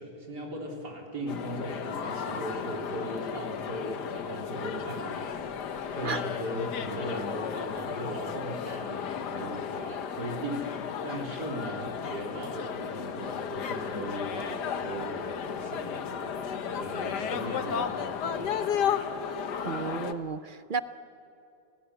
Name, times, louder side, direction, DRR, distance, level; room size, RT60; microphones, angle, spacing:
voice 1, 0.0-18.9, right 1 dB, 85° right, 0 dB, 4.4 m, -38 dB
sound 1, 1.3-20.1, left 7 dB, 90° left, 1.8 m, -34 dB
voice 2, 19.6-20.8, right 5 dB, 45° right, 12 dB, 0.7 m, -33 dB
29.0 x 18.5 x 9.7 m, 2.7 s
omnidirectional pair, 1.7 m